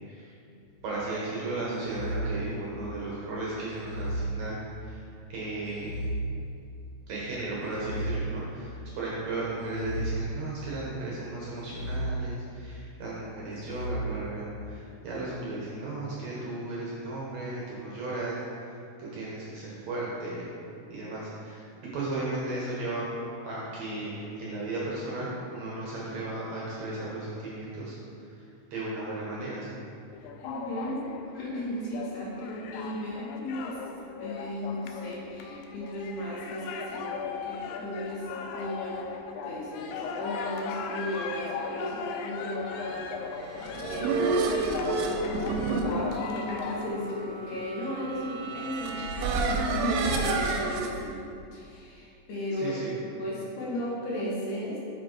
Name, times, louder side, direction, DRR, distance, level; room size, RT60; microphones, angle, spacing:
sound 1, 0.6-1.1 1.7-3.0 3.7-5.0 5.7-6.9 7.6-8.9 9.6-10.9 11.6-12.9 13.5-13.9, right 1 dB, 40° right, 1.5 m, -35 dB
voice 1, 0.8-5.0 5.3-6.0 7.1-8.7 9.0-20.5 20.9-21.6 21.9-23.1 23.4-28.0 28.4-28.5 28.7-29.8 52.5-53.0, right 2 dB, 65° right, -6 dB, 1.9 m, -35 dB
sound 2, 30.1-46.9, left 5 dB, 85° left, 1.7 m, -38 dB
voice 2, 30.4-31.0 31.3-33.8 34.2-39.1 39.4-51.2 51.5-54.8, equal, 70° left, -5 dB, 2.5 m, -35 dB
sound 3, 43.4-50.9, right 3 dB, 85° right, 2.2 m, -30 dB
6.4 x 5.0 x 4.5 m, 2.5 s
omnidirectional pair, 4.0 m